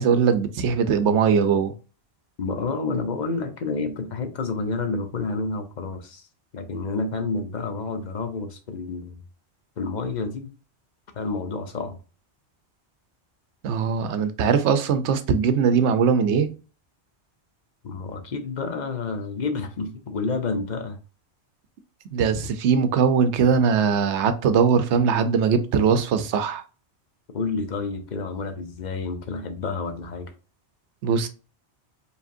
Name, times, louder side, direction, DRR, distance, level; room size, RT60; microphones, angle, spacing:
voice 1, 0.0-1.7 13.6-16.5 22.1-26.6 31.0-31.3, right 6 dB, 85° right, 0.9 m, -21 dB
voice 2, 2.4-6.3 6.5-9.2 9.8-10.5 11.1-12.0 17.8-21.0 27.3-30.3, left 4 dB, 45° left, 0.8 m, -29 dB
4.9 x 3.3 x 2.6 m
omnidirectional pair, 1.1 m